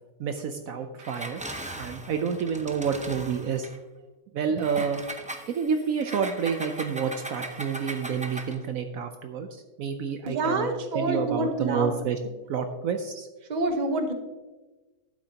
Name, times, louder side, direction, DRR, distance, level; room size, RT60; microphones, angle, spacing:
voice 1, 0.2-1.4 1.8-3.7 4.3-5.0 5.5-10.7 10.9-12.2 12.5-13.3, right 6 dB, 70° right, 6 dB, 1.0 m, -29 dB
Engine, 1.0-3.8 4.6-8.6, right 1 dB, 10° right, 0.3 m, -39 dB
voice 2, 10.3-11.9 13.5-14.1, right 2 dB, 35° right, 5 dB, 1.0 m, -27 dB
11.5 x 9.1 x 2.9 m, 1.2 s
omnidirectional pair, 1.6 m